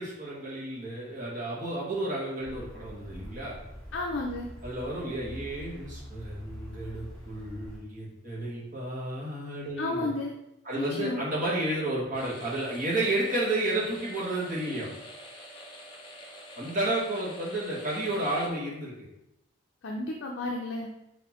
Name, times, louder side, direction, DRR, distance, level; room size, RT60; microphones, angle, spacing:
voice 1, 0.0-3.6 4.6-10.1 10.6-14.9 16.5-18.9, right 1 dB, 40° right, -6 dB, 1.4 m, -31 dB
sound 1, 2.4-7.8, equal, 5° left, 1.2 m, -44 dB
voice 2, 3.9-4.5 9.8-10.3 10.8-11.2 19.8-20.9, left 2 dB, 55° left, 0 dB, 0.5 m, -32 dB
sound 2, 12.1-18.5, equal, 20° left, 0.7 m, -47 dB
5.8 x 2.8 x 3.0 m, 0.87 s
head